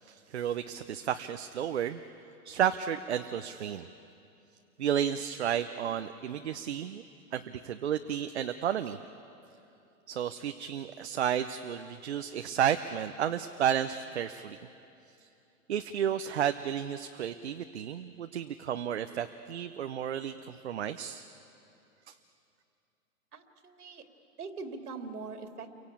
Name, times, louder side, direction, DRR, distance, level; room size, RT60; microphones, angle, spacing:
voice 1, 0.0-2.0 2.4-3.9 4.8-7.0 7.3-9.0 10.1-14.6 15.2-15.3 15.7-21.2 22.1-22.2, right 9 dB, 50° right, 8 dB, 0.7 m, -32 dB
voice 2, 23.3-24.0 24.4-25.7, right 4 dB, 85° right, 5 dB, 2.9 m, -42 dB
29.5 x 23.5 x 8.6 m, 2.7 s
hypercardioid pair, 175°, 45 cm